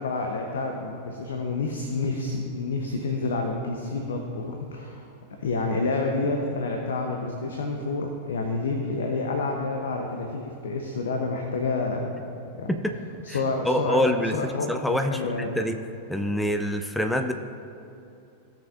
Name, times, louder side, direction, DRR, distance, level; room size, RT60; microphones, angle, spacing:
voice 1, 0.0-5.1 5.4-12.1 12.6-12.8 13.2-15.6, left 3 dB, 65° left, 3 dB, 0.8 m, -29 dB
voice 2, 13.6-14.4 14.7-15.8 16.1-17.3, equal, 5° left, 6 dB, 0.5 m, -26 dB
17.0 x 6.6 x 2.5 m, 2.7 s
figure-of-eight pair, 90°, 0 cm